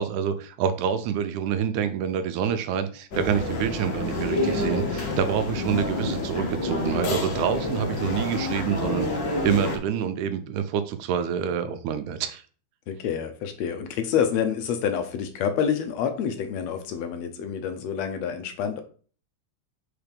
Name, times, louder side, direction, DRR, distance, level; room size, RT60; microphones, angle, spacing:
voice 1, 0.0-12.4, right 8 dB, 90° right, 10 dB, 2.2 m, -27 dB
sound 1, 3.1-9.8, left 2 dB, 50° left, 1.6 m, -28 dB
voice 2, 12.9-18.8, left 8 dB, 75° left, 7 dB, 1.8 m, -27 dB
4.7 x 4.5 x 5.2 m, 0.42 s
omnidirectional pair, 3.3 m